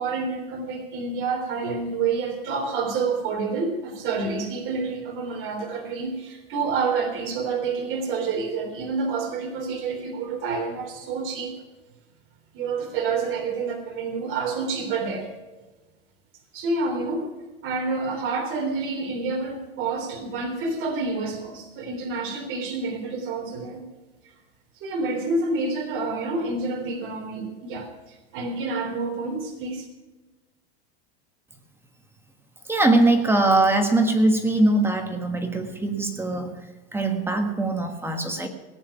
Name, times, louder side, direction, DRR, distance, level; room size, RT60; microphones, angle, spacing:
voice 1, 0.0-11.6 12.5-15.3 16.5-17.3 17.6-23.8 24.8-29.9, right 4 dB, 40° right, 2 dB, 3.4 m, -28 dB
voice 2, 32.7-36.5 36.9-38.5, right 2 dB, 5° right, 5 dB, 1.5 m, -21 dB
18.0 x 9.4 x 5.9 m, 1.2 s
supercardioid pair, 140°, 32 cm